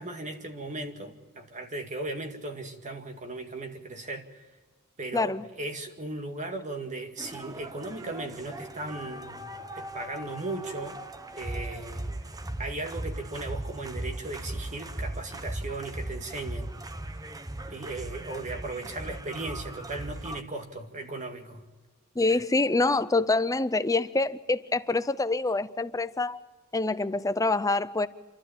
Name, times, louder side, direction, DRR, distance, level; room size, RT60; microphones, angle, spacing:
voice 1, 0.0-4.4 5.0-9.5 9.8-11.0 11.4-12.1 12.6-16.7 17.7-21.7 22.3-22.4, right 2 dB, 35° right, 2.1 m, -37 dB
voice 2, 5.1-5.5 22.2-26.4 26.7-28.1, left 3 dB, 15° left, 0.6 m, -26 dB
sound 1, 7.2-20.4, right 1 dB, 15° right, 0.8 m, -38 dB
28.5 x 12.5 x 8.7 m
head